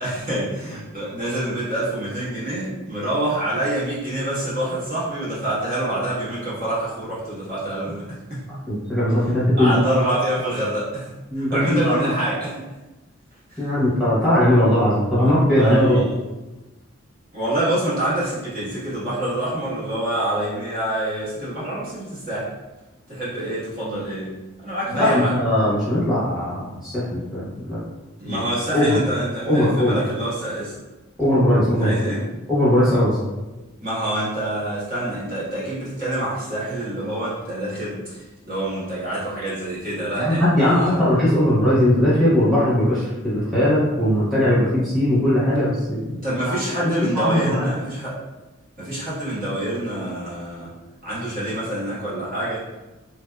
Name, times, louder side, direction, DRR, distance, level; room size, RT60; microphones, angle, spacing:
voice 1, 0.0-8.4 9.6-11.1 11.4-12.6 13.5-13.6 15.1-15.3 15.6-16.2 17.3-22.5 23.1-25.3 28.2-30.8 31.7-32.3 33.8-41.0 46.2-48.1 48.8-50.7 51.0-52.6, right 1 dB, 40° right, -10 dB, 1.2 m, -26 dB
voice 2, 8.7-9.8 11.3-12.1 13.6-16.0 24.9-27.8 28.2-28.4 28.7-29.0 29.5-30.0 31.2-32.0 32.5-33.2 40.2-46.2 46.4-47.7, left 1 dB, ahead, -12 dB, 1.0 m, -19 dB
3.2 x 2.6 x 2.2 m, 1.1 s
head